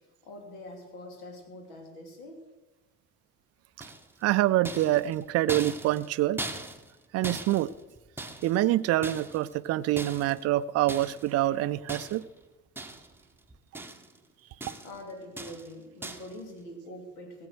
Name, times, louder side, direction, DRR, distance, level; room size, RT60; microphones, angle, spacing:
voice 1, 0.2-2.4 14.8-17.5, left 1 dB, 70° left, 2.9 m, -44 dB
sound 1, 3.8-4.3 4.7-7.0 7.2-8.7 9.0-9.6 10.0-10.4 10.9-11.3 11.9-12.4 12.8-13.2 13.5-14.2 14.6-15.0 15.4-15.7 16.0-16.4, right 2 dB, 5° right, 1.0 m, -40 dB
voice 2, 4.2-6.4 7.1-7.7 8.4-12.2, right 14 dB, 35° right, 0.5 m, -26 dB
16.5 x 7.8 x 6.3 m
figure-of-eight pair, 55°, 45 cm